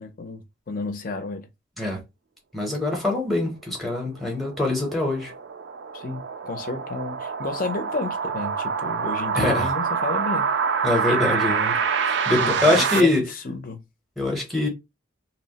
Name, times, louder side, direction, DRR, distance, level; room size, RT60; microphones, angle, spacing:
voice 1, 0.0-1.5 5.9-10.5 12.4-13.8, left 3 dB, 45° left, 0.6 m, -32 dB
voice 2, 2.5-5.3 9.3-9.7 10.8-13.3 14.2-14.7, left 2 dB, ahead, 0.7 m, -24 dB
sound 1, 4.3-13.0, right 6 dB, 60° right, 0.4 m, -26 dB
2.8 x 2.0 x 2.8 m
head